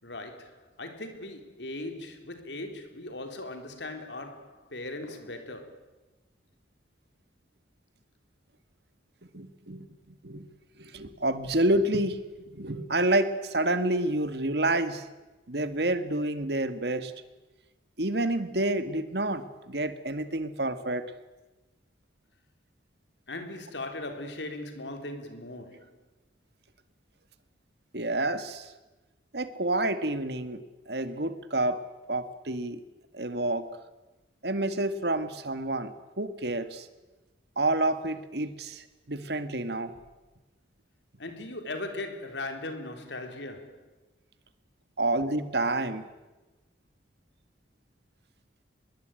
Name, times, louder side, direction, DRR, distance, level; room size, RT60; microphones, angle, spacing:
voice 1, 0.0-5.9 23.3-26.0 41.2-43.9, left 2 dB, 80° left, 3.7 m, -39 dB
voice 2, 9.3-9.9 10.2-10.5 10.8-12.2 12.5-15.1 15.5-17.1 18.0-21.0 27.9-28.7 29.3-31.8 32.1-32.8 33.1-33.7 34.4-36.9 37.6-40.0 45.0-46.1, right 2 dB, 65° right, 2.0 m, -29 dB
25.0 x 21.5 x 9.2 m
head